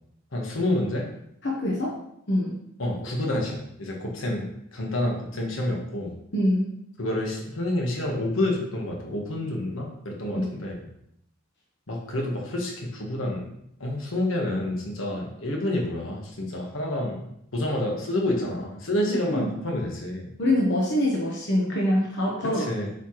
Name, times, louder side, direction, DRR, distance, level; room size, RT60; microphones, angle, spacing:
voice 1, 0.3-1.1 2.8-6.1 7.0-10.8 11.9-13.5 13.8-20.3 22.5-22.9, left 1 dB, 75° left, 0 dB, 1.4 m, -28 dB
voice 2, 1.4-2.0 2.3-2.6 6.3-6.7 10.3-10.5 19.2-19.5 20.4-22.6, left 1 dB, 55° left, -3 dB, 1.1 m, -24 dB
7.7 x 4.8 x 3.1 m, 0.75 s
head